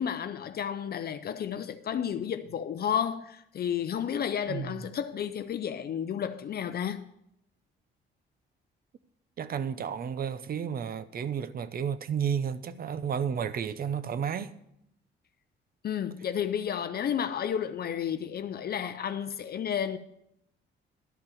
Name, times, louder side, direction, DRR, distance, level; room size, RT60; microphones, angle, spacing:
voice 1, 0.0-7.0 15.8-20.0, left 8 dB, 50° left, 0.5 m, -32 dB
voice 2, 9.4-14.5, right 7 dB, 50° right, 0.6 m, -32 dB
12.0 x 5.4 x 7.0 m
cardioid pair, 90°, 20 cm